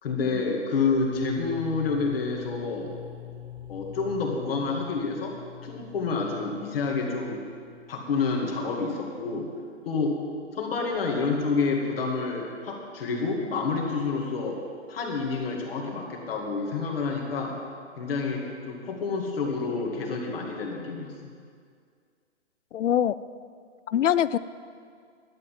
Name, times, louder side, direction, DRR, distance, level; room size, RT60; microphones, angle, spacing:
voice 1, 0.0-2.9 3.7-5.4 5.6-7.4 7.9-9.5 9.8-10.2 10.6-14.6 14.9-17.6 18.0-21.1, left 4 dB, 50° left, 0 dB, 2.4 m, -28 dB
sound 1, 0.8-8.5, left 11 dB, 10° right, 1.7 m, -43 dB
voice 2, 22.7-23.1 23.9-24.4, left 10 dB, 75° left, 16 dB, 0.5 m, -23 dB
12.0 x 8.1 x 7.5 m, 2.1 s
hypercardioid pair, 155°, 36 cm